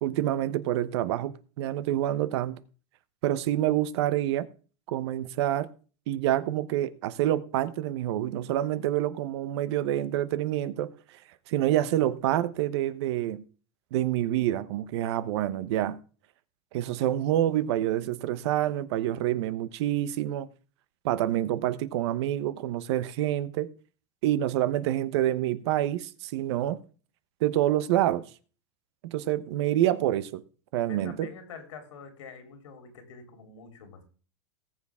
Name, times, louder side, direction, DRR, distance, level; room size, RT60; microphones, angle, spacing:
voice 1, 0.0-2.6 3.2-4.5 4.9-5.7 6.1-10.9 11.5-13.4 13.9-16.0 16.7-20.5 21.0-23.7 24.2-26.8 27.4-28.3 29.1-30.4 30.7-31.3, right 13 dB, 65° right, 1.0 m, -27 dB
voice 2, 30.9-34.1, left 5 dB, 85° left, 3.6 m, -46 dB
19.0 x 7.4 x 3.6 m
supercardioid pair, 130°, 15 cm